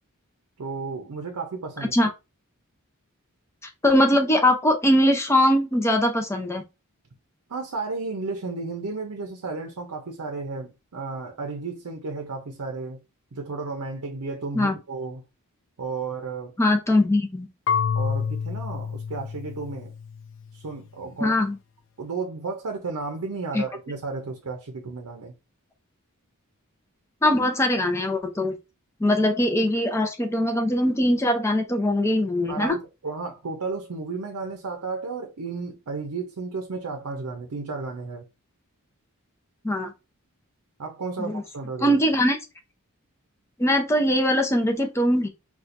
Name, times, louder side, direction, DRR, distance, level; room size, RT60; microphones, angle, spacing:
voice 1, 0.6-1.9 7.5-13.0 13.3-15.2 15.8-16.5 17.9-19.9 20.5-21.4 22.0-25.3 32.5-38.3 40.8-42.0, right 4 dB, 75° right, 0.6 m, -33 dB
voice 2, 3.8-6.6 14.5-14.8 16.6-17.5 21.2-21.6 23.5-23.6 27.2-28.6 29.0-32.8 39.6-39.9 41.2-41.4 41.8-42.4 43.6-45.3, left 1 dB, 10° left, 0.6 m, -21 dB
Marimba xylophone / Wood, 17.7-20.5, left 6 dB, 55° left, 0.3 m, -28 dB
4.2 x 2.4 x 2.5 m
head